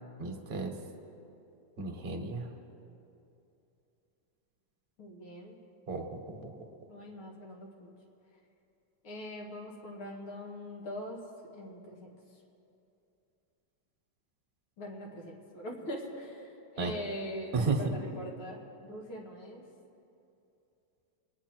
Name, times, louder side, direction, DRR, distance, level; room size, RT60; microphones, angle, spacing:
voice 1, 0.2-0.7 1.8-2.5 5.9-6.6 16.8-16.9 17.5-17.9, right 4 dB, 35° right, 3 dB, 1.2 m, -33 dB
voice 2, 5.0-5.6 6.9-7.9 9.0-11.2 11.5-12.1 14.8-19.6, left 1 dB, 85° left, -1 dB, 2.8 m, -42 dB
23.5 x 9.8 x 4.5 m, 2.7 s
omnidirectional pair, 2.2 m